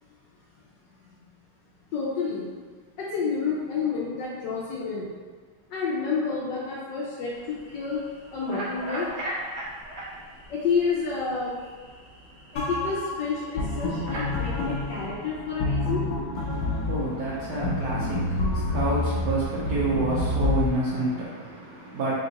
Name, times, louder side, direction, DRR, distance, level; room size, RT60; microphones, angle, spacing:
voice 1, 1.9-2.5 3.0-5.1 5.7-8.0 8.3-9.1 10.5-11.6 12.5-16.0, left 5 dB, 75° left, -6 dB, 1.2 m, -29 dB
sound 1, 7.3-15.1, right 1 dB, 50° right, 1.2 m, -40 dB
sound 2, 12.6-20.7, left 2 dB, 55° left, 1.0 m, -28 dB
voice 2, 16.5-22.2, right 2 dB, 65° right, -8 dB, 1.1 m, -29 dB
3.7 x 2.4 x 3.9 m, 1.5 s
omnidirectional pair, 2.1 m